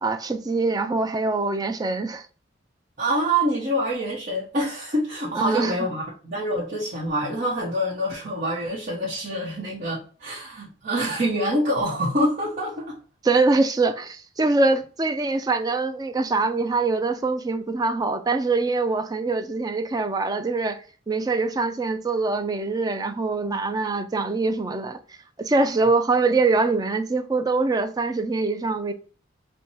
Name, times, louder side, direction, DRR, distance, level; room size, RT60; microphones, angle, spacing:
voice 1, 0.0-2.3 5.3-5.7 13.2-20.8 21.1-28.9, right 3 dB, 20° right, 0.4 m, -24 dB
voice 2, 3.0-13.0, right 1 dB, 50° right, 1.0 m, -26 dB
4.5 x 2.2 x 2.7 m
head